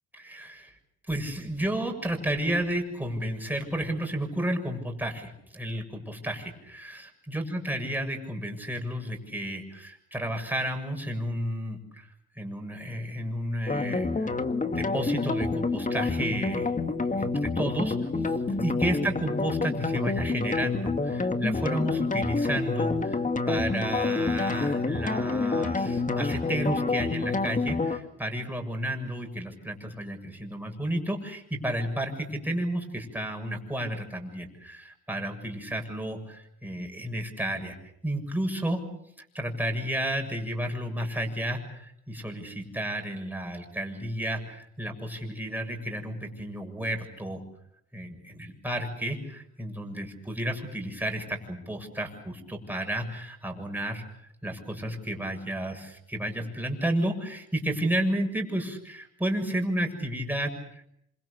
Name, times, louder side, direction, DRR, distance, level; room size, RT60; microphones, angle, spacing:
voice 1, 0.1-0.7 1.1-12.1 12.4-14.3 14.7-18.1 18.6-23.2 23.5-37.8 38.0-38.8 39.3-47.4 47.9-54.0 54.4-60.8, right 1 dB, 5° right, 3 dB, 7.1 m, -32 dB
sound 1, 13.7-28.0, left 3 dB, 25° left, 1.9 m, -28 dB
28.0 x 26.0 x 6.8 m, 0.76 s
cardioid pair, 90°, 30 cm